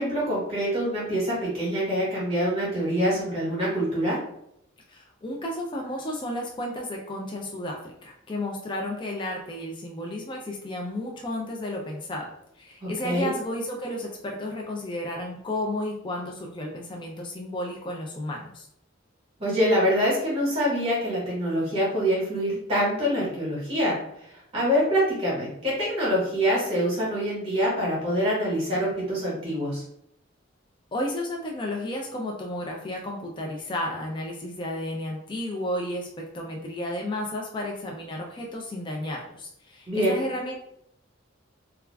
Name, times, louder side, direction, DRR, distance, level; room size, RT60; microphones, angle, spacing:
voice 1, 0.0-4.2 12.8-13.3 19.4-23.9 24.5-29.8 39.9-40.2, equal, 30° right, -6 dB, 1.0 m, -25 dB
voice 2, 4.9-18.7 30.9-40.5, left 1 dB, 25° left, 0 dB, 0.3 m, -33 dB
2.3 x 2.2 x 3.2 m, 0.76 s
head